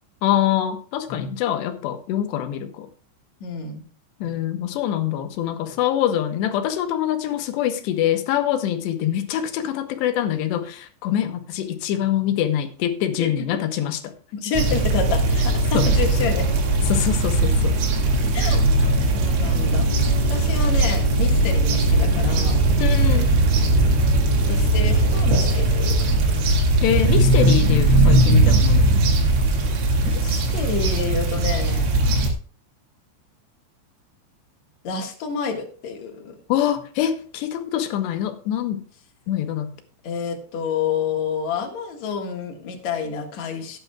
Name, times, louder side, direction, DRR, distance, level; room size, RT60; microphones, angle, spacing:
voice 1, 0.2-2.9 4.2-14.1 15.7-15.9 16.8-17.8 22.8-23.3 26.8-29.0 36.5-38.8 39.3-39.7, left 11 dB, 75° left, 2.9 m, -24 dB
voice 2, 3.4-3.8 4.2-4.3 13.2-13.3 14.3-16.5 18.3-19.9 20.3-22.6 24.5-26.2 30.0-31.9 34.8-36.4 40.0-43.8, left 6 dB, 55° left, 2.1 m, -29 dB
sound 1, 14.5-32.3, right 2 dB, 80° right, 4.3 m, -19 dB
16.5 x 9.2 x 2.3 m
omnidirectional pair, 5.4 m